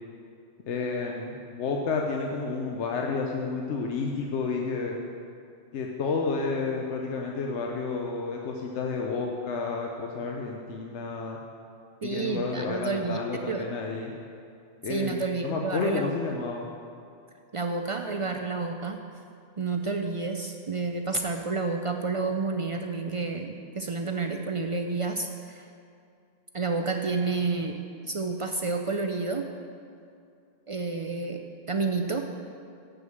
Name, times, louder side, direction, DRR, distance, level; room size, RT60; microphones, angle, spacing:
voice 1, 0.7-5.0 5.7-11.4 12.0-14.1 14.8-15.2 15.4-16.7, left 4 dB, 80° left, 0 dB, 1.1 m, -30 dB
voice 2, 12.0-13.2 13.5-13.6 14.9-16.1 17.5-19.0 19.6-25.7 26.5-29.5 30.7-32.3, right 4 dB, 60° right, 4 dB, 0.3 m, -30 dB
7.2 x 6.4 x 7.8 m, 2.4 s
omnidirectional pair, 1.2 m